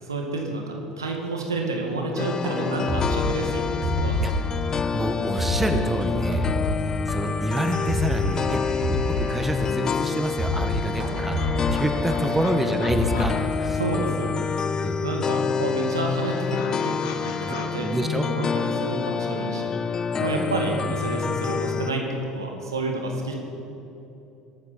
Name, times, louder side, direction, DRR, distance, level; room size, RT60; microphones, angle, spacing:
voice 1, 0.0-4.3 11.9-12.0 12.2-12.3 13.8-17.9 18.1-22.1 22.3-23.3, right 2 dB, 80° right, 1 dB, 1.9 m, -30 dB
sound 1, 2.2-21.9, left 6 dB, 30° left, 0.5 m, -27 dB
sound 2, 2.4-4.4 4.7-4.8 5.2-5.7 6.0-6.1 6.3-6.8 7.6-9.4 9.9-10.0 10.2-10.7 11.0-13.5, left 1 dB, 40° right, 4.0 m, -28 dB
voice 2, 4.9-6.5 7.1-8.6 8.9-11.4 11.7-13.8 14.8-15.0 17.5-18.2, right 1 dB, 10° right, 6 dB, 1.3 m, -28 dB
sound 3, 11.3-14.5 14.8-17.7, left 7 dB, 65° left, 1.5 m, -42 dB
21.0 x 13.0 x 4.3 m, 2.9 s
figure-of-eight pair, 65°, 2 cm